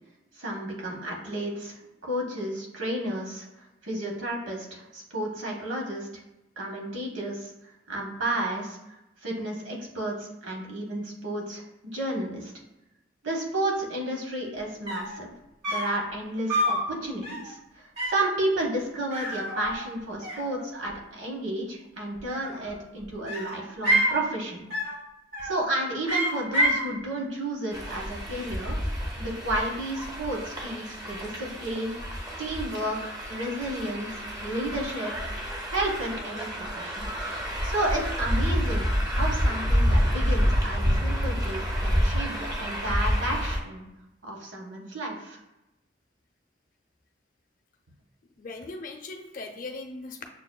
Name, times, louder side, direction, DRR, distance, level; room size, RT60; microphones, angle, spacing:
voice 1, 0.4-3.5 3.8-6.1 6.6-7.5 7.9-8.8 9.2-11.6 11.9-12.5 13.2-15.3 15.7-24.6 25.4-28.8 29.2-31.9 32.4-35.1 35.7-37.1 37.6-43.8 44.2-45.4, right 1 dB, 85° right, -1 dB, 1.0 m, -32 dB
sound 1, 14.6-14.7 14.9-15.2 15.6-16.0 16.5-16.9 17.2-17.5 18.0-18.3 19.1-20.0 20.2-20.9 22.2-22.8 23.3-24.2 24.7-25.0 25.3-25.7 26.1-26.9, equal, 60° right, 1.0 m, -28 dB
sound 2, 27.7-43.6, equal, 20° right, 0.5 m, -28 dB
voice 2, 48.4-50.2, left 3 dB, 45° left, 3 dB, 0.5 m, -39 dB
6.5 x 2.3 x 2.2 m, 0.93 s
head